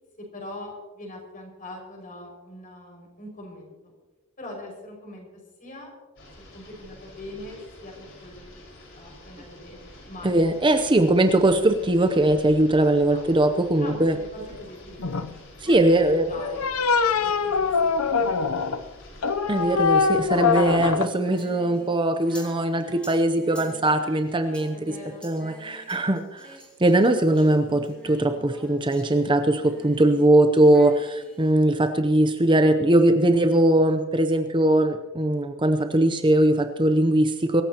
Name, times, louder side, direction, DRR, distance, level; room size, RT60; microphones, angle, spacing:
voice 1, 0.2-3.9 4.4-5.3 5.6-5.9 6.4-7.9 8.2-10.9 13.0-13.3 13.8-15.2 15.6-16.7 17.2-18.6 24.7-25.2 25.6-26.1, left 1 dB, 40° left, 0 dB, 5.8 m, -42 dB
sound 1, 6.2-20.9, left 1 dB, 60° left, 5.1 m, -47 dB
voice 2, 10.2-14.2 15.6-16.2 19.5-24.8 25.2-37.6, right 1 dB, 20° right, 8 dB, 0.7 m, -20 dB
sound 2, 15.0-15.3 16.4-18.8 19.2-21.1, left 5 dB, 80° left, 0.7 m, -23 dB
Singing, 21.2-30.4 30.6-31.5, equal, 5° left, 3.3 m, -48 dB
24.5 x 14.5 x 2.9 m, 1.2 s
head